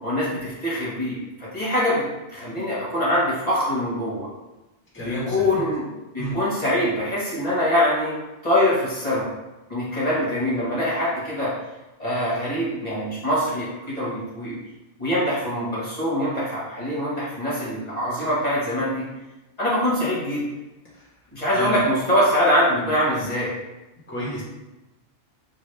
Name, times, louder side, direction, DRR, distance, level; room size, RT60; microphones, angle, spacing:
voice 1, 0.0-2.0 2.3-4.3 5.0-5.9 6.1-8.1 8.4-9.3 9.7-11.5 12.0-14.6 15.0-19.0 19.6-20.4 21.3-23.5, left 1 dB, 35° left, -8 dB, 1.4 m, -23 dB
voice 2, 4.9-5.6 6.2-6.3 21.5-21.8 22.8-23.2 24.1-24.4, equal, 10° left, -7 dB, 1.1 m, -31 dB
5.8 x 2.5 x 3.2 m, 1.0 s
omnidirectional pair, 1.2 m